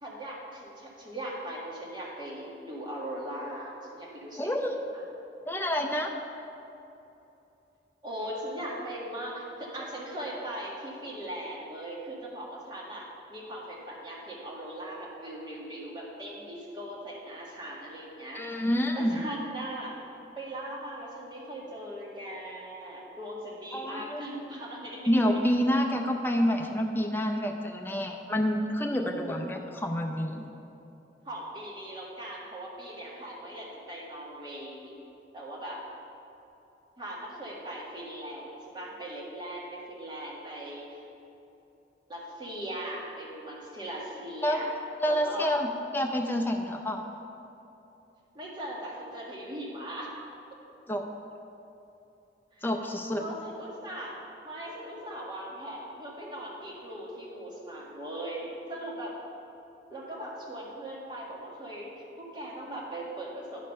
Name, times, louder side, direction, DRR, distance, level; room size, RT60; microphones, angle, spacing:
voice 1, 0.0-5.0 8.0-18.4 19.0-19.9 20.4-25.0 31.3-34.9 35.3-35.8 37.0-41.0 42.1-44.7 45.1-45.5 48.3-50.1 52.5-52.7 53.1-54.2 54.4-59.1 59.9-63.7, right 1 dB, 25° right, -5 dB, 1.6 m, -39 dB
voice 2, 4.4-4.7 5.5-6.2 18.3-19.1 23.7-24.2 25.1-30.4 44.4-44.6 45.0-47.0 50.9-51.1 52.6-53.2, equal, 10° left, 2 dB, 0.6 m, -28 dB
10.5 x 5.1 x 5.5 m, 2.9 s
head